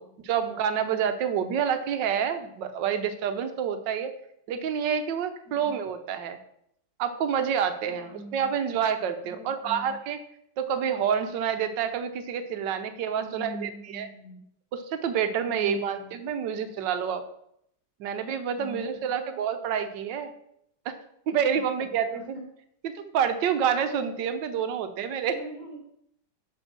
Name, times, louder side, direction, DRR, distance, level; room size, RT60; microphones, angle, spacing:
voice 1, 0.2-4.1 4.5-6.4 7.0-10.2 10.6-14.1 14.7-17.2 18.0-20.3 20.8-20.9 21.3-22.2 22.8-25.3, right 8 dB, 70° right, 9 dB, 1.3 m, -28 dB
voice 2, 5.4-5.8 8.0-8.5 9.2-9.9 13.2-14.4 15.5-16.1 18.6-19.4 21.5-21.9 22.1-22.4 25.3-25.8, right 1 dB, 45° left, -2 dB, 2.9 m, -43 dB
6.2 x 5.4 x 5.9 m, 0.73 s
omnidirectional pair, 2.2 m